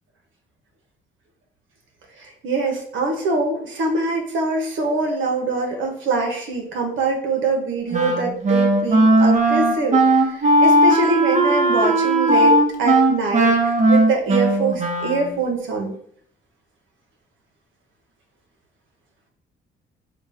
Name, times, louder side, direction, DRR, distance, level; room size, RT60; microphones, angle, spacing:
voice 1, 2.2-15.9, right 3 dB, 80° right, 2 dB, 1.1 m, -24 dB
Wind instrument woodwind instrument, 7.9-15.4, right 1 dB, 40° right, 1.0 m, -17 dB
4.4 x 2.4 x 4.3 m, 0.62 s
cardioid pair, 90°, 20 cm